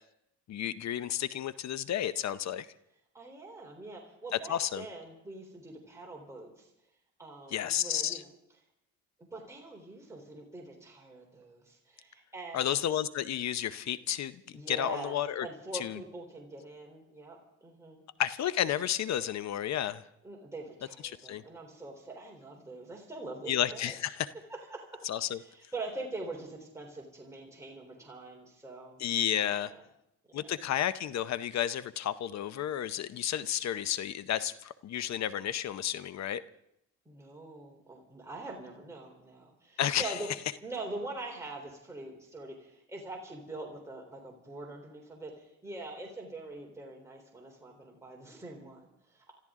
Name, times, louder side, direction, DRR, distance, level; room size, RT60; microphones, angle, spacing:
voice 1, 0.5-2.7 4.3-4.8 7.5-8.2 12.5-14.4 14.7-15.5 15.7-16.0 18.2-20.0 21.0-21.4 23.5-24.3 25.0-25.4 29.0-29.7 30.3-36.4 39.8-40.2, left 11 dB, 65° left, 15 dB, 0.8 m, -32 dB
voice 2, 3.1-6.7 7.2-8.3 9.3-12.9 14.5-18.0 20.2-23.9 24.5-25.1 25.3-29.0 29.3-29.8 30.3-30.5 37.1-40.3 40.6-49.3, right 2 dB, 10° right, -1 dB, 3.5 m, -44 dB
27.0 x 13.5 x 3.7 m, 0.80 s
cardioid pair, 90°, 30 cm